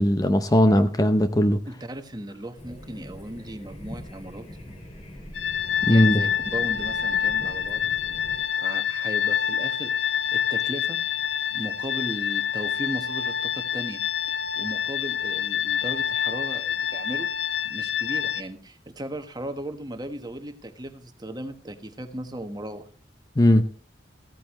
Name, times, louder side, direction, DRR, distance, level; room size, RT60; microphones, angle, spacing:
voice 1, 0.0-1.6 5.8-6.2 23.4-23.6, left 1 dB, 20° left, 9 dB, 0.7 m, -19 dB
voice 2, 1.7-4.4 5.9-7.9 8.6-11.0 11.5-14.0 14.6-17.3 17.6-22.9, right 1 dB, 25° right, 8 dB, 1.2 m, -36 dB
sound 1, 2.6-8.4, left 1 dB, 35° left, 4.0 m, -42 dB
sound 2, 5.3-18.4, left 8 dB, 75° left, 0.8 m, -27 dB
15.0 x 13.5 x 3.1 m, 0.37 s
head